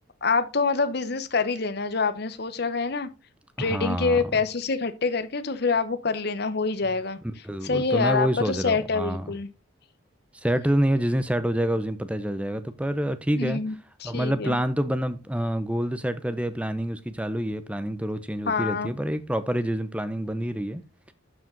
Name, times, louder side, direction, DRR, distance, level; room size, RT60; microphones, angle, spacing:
voice 1, 0.2-3.1 3.6-7.2 7.6-9.5 13.3-13.7 14.0-14.6 18.5-18.9, left 4 dB, 50° left, 0.8 m, -26 dB
voice 2, 3.6-4.4 7.4-9.4 10.4-13.6 14.0-20.8, equal, 5° right, 0.6 m, -27 dB
12.0 x 4.9 x 3.9 m
head